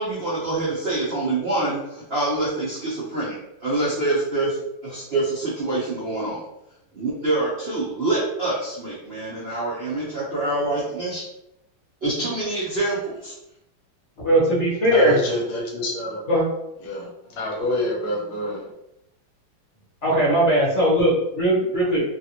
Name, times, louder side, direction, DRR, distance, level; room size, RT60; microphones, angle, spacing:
voice 1, 0.0-4.6 4.8-6.4 6.9-11.2 12.0-13.3, right 2 dB, 60° right, -8 dB, 0.6 m, -26 dB
voice 2, 14.2-15.2 16.3-16.4 20.0-22.0, right 1 dB, 45° left, -6 dB, 1.0 m, -19 dB
voice 3, 14.9-16.2 16.8-18.7, left 1 dB, 70° left, -2 dB, 1.3 m, -27 dB
3.2 x 2.5 x 2.8 m, 0.83 s
omnidirectional pair, 2.3 m